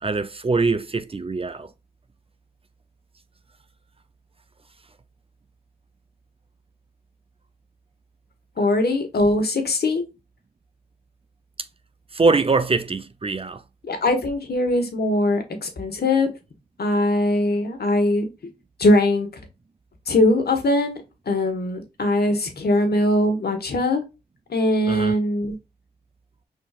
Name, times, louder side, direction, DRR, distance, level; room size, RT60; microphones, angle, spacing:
voice 1, 0.0-1.7 11.6-11.7 12.1-13.6 24.9-25.1, right 3 dB, 30° right, 0.6 m, -23 dB
voice 2, 8.6-10.0 13.8-16.3 16.8-18.3 18.8-19.3 20.1-21.0 21.3-24.0 24.5-25.5, left 1 dB, 65° left, 1.5 m, -21 dB
5.0 x 3.9 x 2.4 m
cardioid pair, 45°, 18 cm